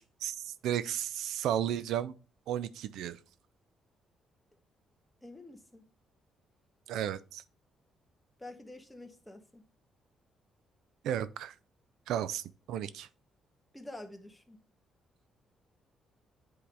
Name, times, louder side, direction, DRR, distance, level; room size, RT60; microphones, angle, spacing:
voice 1, 0.2-2.1 2.5-3.2 6.9-7.4 11.0-11.5 12.1-13.1, right 10 dB, 85° right, 0.5 m, -33 dB
voice 2, 5.2-5.9 8.4-9.6 13.7-14.6, left 1 dB, 10° left, 1.4 m, -48 dB
8.6 x 3.9 x 3.3 m
cardioid pair, 90°, 0 cm